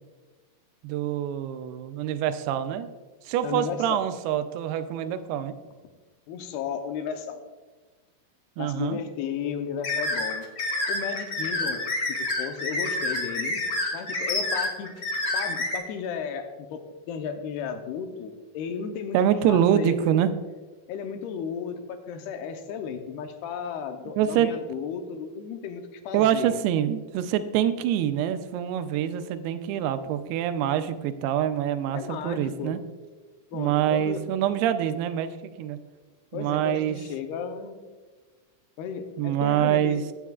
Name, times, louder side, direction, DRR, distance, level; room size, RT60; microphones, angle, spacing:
voice 1, 0.8-2.9 3.3-5.6 8.6-9.0 19.1-20.3 24.1-24.5 26.1-32.8 33.5-35.3 35.6-35.8 36.3-37.0 39.2-40.0, right 10 dB, 85° right, 10 dB, 2.6 m, -25 dB
voice 2, 3.4-4.0 6.3-7.4 8.6-10.5 10.9-13.6 13.9-14.9 15.3-16.8 17.1-19.2 19.5-20.0 20.9-26.6 31.9-32.8 33.5-34.2 36.3-37.8 38.8-40.0, left 7 dB, 85° left, 6 dB, 2.8 m, -34 dB
sound 1, 9.8-15.8, left 2 dB, 70° left, 0.8 m, -28 dB
16.5 x 9.3 x 2.4 m, 1.4 s
omnidirectional pair, 4.5 m